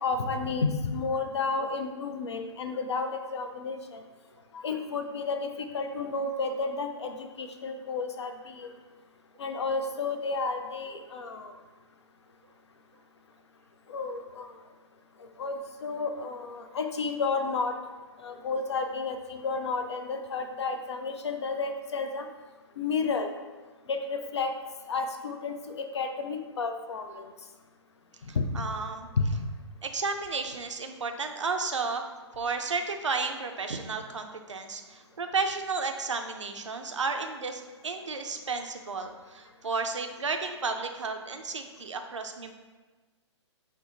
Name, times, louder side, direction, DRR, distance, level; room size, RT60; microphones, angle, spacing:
voice 1, 0.0-4.0 4.5-8.7 9.4-11.5 13.9-14.5 15.4-17.7 18.2-22.3 22.8-23.3 23.9-24.5 24.9-27.3 28.3-28.6 29.2-29.3, left 4 dB, 65° left, 6 dB, 0.4 m, -31 dB
voice 2, 28.3-29.1 29.8-42.5, right 4 dB, 80° right, 5 dB, 0.4 m, -33 dB
4.5 x 2.1 x 3.7 m, 1.3 s
figure-of-eight pair, 125°, 15 cm